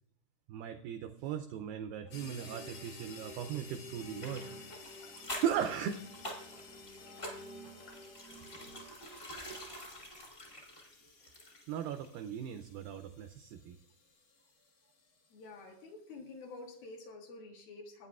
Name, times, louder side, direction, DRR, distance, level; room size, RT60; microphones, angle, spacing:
voice 1, 0.5-4.5 5.4-6.0 11.7-13.8, right 9 dB, 85° right, 8 dB, 2.0 m, -37 dB
sound 1, 2.0-8.9, equal, 90° left, 4.6 m, -53 dB
sound 2, 2.1-15.7, left 5 dB, 50° left, 2.1 m, -55 dB
sound 3, 4.2-11.8 12.0-12.1, left 1 dB, 25° left, 1.1 m, -47 dB
voice 2, 15.3-18.1, left 3 dB, 65° left, 0 dB, 3.0 m, -49 dB
16.5 x 9.4 x 2.4 m, 0.70 s
omnidirectional pair, 4.7 m